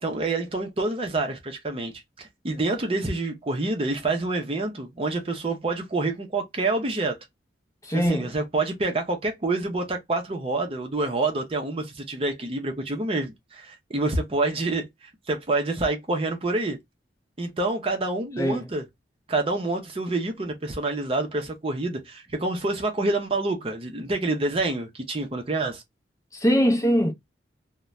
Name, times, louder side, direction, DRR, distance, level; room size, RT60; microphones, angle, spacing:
voice 1, 0.0-7.2 7.9-16.8 17.4-18.8 19.3-25.8, right 2 dB, 30° right, 0.6 m, -27 dB
voice 2, 7.8-8.3 18.4-18.7 26.3-27.1, equal, 15° left, 0.6 m, -22 dB
2.5 x 2.1 x 3.1 m
head